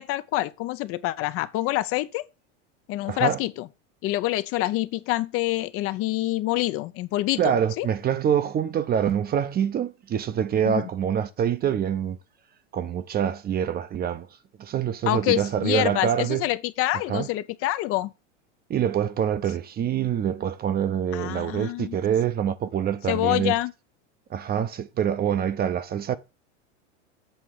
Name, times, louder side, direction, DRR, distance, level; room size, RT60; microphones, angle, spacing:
voice 1, 0.0-2.2 2.9-3.7 4.0-7.9 10.7-10.9 15.1-18.1 21.1-22.0 23.1-23.7, left 17 dB, 40° left, 0.5 m, -26 dB
voice 2, 3.0-3.4 7.4-12.2 12.7-14.3 14.6-16.5 17.1-17.3 18.7-23.6 24.3-26.2, right 9 dB, 25° right, 0.6 m, -25 dB
7.9 x 3.4 x 6.4 m
hypercardioid pair, 105°, 36 cm